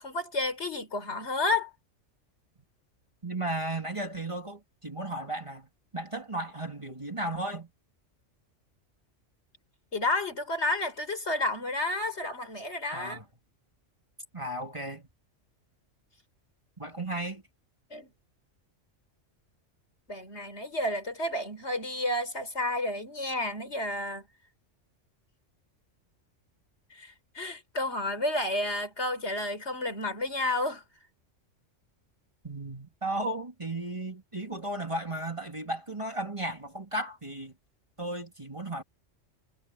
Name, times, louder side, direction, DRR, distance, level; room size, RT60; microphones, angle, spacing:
voice 1, 0.0-1.7 9.9-13.2 17.9-18.1 20.1-24.3 26.9-30.8, left 2 dB, 60° left, 4.4 m, -31 dB
voice 2, 3.2-5.7 5.9-7.7 12.9-13.2 14.3-15.1 16.8-17.4 32.4-37.5 38.0-38.8, right 1 dB, 25° right, 2.6 m, -35 dB
omnidirectional pair, 1.3 m